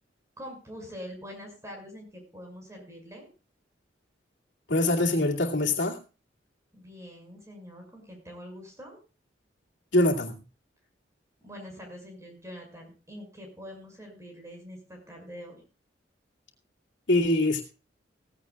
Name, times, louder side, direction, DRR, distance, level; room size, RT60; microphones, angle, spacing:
voice 1, 0.4-3.3 6.7-9.0 11.4-15.6, equal, 15° right, 2 dB, 5.8 m, -44 dB
voice 2, 4.7-6.0 9.9-10.4 17.1-17.6, left 1 dB, 90° left, 0 dB, 2.5 m, -23 dB
18.0 x 15.5 x 2.4 m, 0.32 s
head